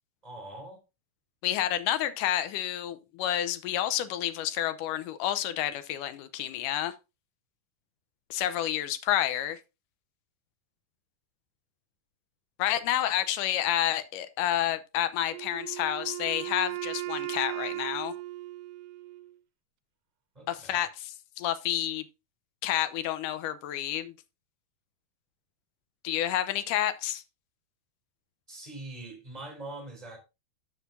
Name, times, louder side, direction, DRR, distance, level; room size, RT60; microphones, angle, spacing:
voice 1, 0.2-0.8 20.3-20.8 28.5-30.2, right 2 dB, 10° right, 3.8 m, -43 dB
voice 2, 1.4-6.9 8.3-9.6 12.6-18.1 20.5-22.1 22.6-24.1 26.0-27.2, left 12 dB, 90° left, 2.3 m, -29 dB
Wind instrument woodwind instrument, 15.3-19.4, right 16 dB, 85° right, 2.2 m, -37 dB
12.5 x 6.6 x 2.6 m
omnidirectional pair, 3.7 m